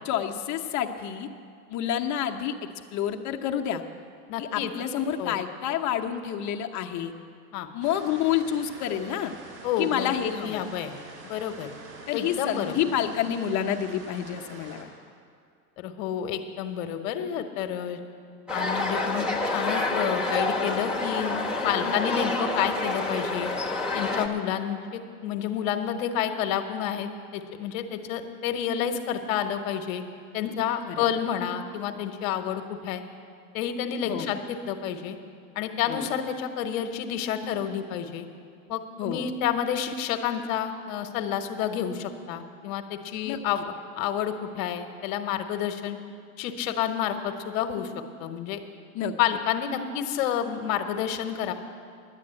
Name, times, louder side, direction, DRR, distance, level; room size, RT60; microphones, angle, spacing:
voice 1, 0.0-1.3 1.7-2.5 2.9-3.8 4.4-7.1 7.7-9.3 9.8-10.6 12.1-14.9 21.6-21.9 30.9-31.1 34.0-34.3 35.9-36.1 39.0-39.3 43.2-43.6 48.9-49.1, left 9 dB, 40° left, 4 dB, 0.9 m, -29 dB
voice 2, 4.3-4.7 5.2-5.4 7.5-7.7 9.6-10.1 10.4-10.9 11.2-11.7 12.1-12.8 15.8-18.0 18.5-19.3 19.5-23.5 23.9-30.0 30.3-33.0 33.5-35.2 35.5-38.3 38.7-43.6 44.0-46.0 46.4-47.9 48.2-48.6 49.2-51.5, left 9 dB, 60° left, 7 dB, 1.2 m, -29 dB
sound 1, 7.8-14.8, right 2 dB, 45° right, 3.8 m, -46 dB
sound 2, 18.5-24.3, left 2 dB, ahead, 1.3 m, -28 dB
11.0 x 8.4 x 8.8 m, 2.2 s
hypercardioid pair, 100°, 45 cm